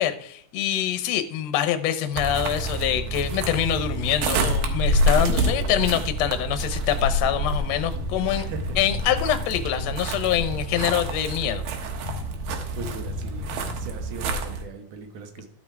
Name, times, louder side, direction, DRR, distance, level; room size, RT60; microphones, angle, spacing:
voice 1, 0.0-8.4 8.8-11.6, left 11 dB, 70° left, 10 dB, 1.8 m, -25 dB
sound 1, 2.1-14.6, right 1 dB, 85° right, 2.9 m, -27 dB
sound 2, 4.5-5.2 5.7-6.4 7.2-8.2 8.5-10.0 10.4-11.3 12.0-14.1, left 11 dB, 85° left, 1.6 m, -39 dB
voice 2, 8.3-9.4 11.8-12.0 12.7-15.5, right 5 dB, 70° right, 5 dB, 2.8 m, -40 dB
12.0 x 5.8 x 4.7 m, 0.65 s
omnidirectional pair, 3.8 m